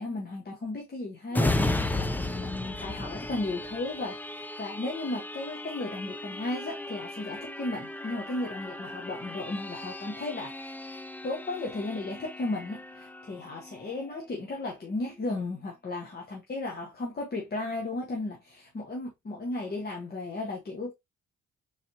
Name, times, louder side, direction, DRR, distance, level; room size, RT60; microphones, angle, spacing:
voice 1, 0.0-10.8 11.2-20.9, left 2 dB, 30° left, 1.1 m, -35 dB
sound 1, 1.3-14.6 15.1-15.2, left 1 dB, 5° left, 0.4 m, -35 dB
4.0 x 3.3 x 2.8 m
cardioid pair, 90°, 30 cm